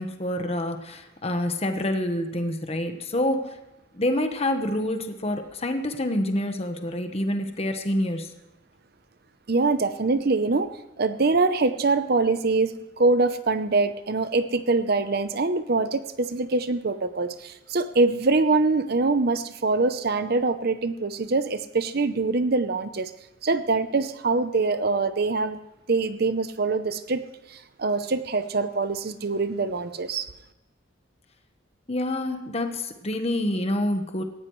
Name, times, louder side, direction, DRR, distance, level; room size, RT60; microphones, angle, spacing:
voice 1, 0.0-3.6 3.9-8.3 31.9-34.2, left 1 dB, 30° left, 6 dB, 1.2 m, -27 dB
voice 2, 9.5-10.7 11.0-23.1 23.4-25.6 25.9-27.2 27.5-30.3, right 3 dB, 55° right, 11 dB, 0.7 m, -24 dB
18.5 x 15.0 x 3.2 m, 0.95 s
head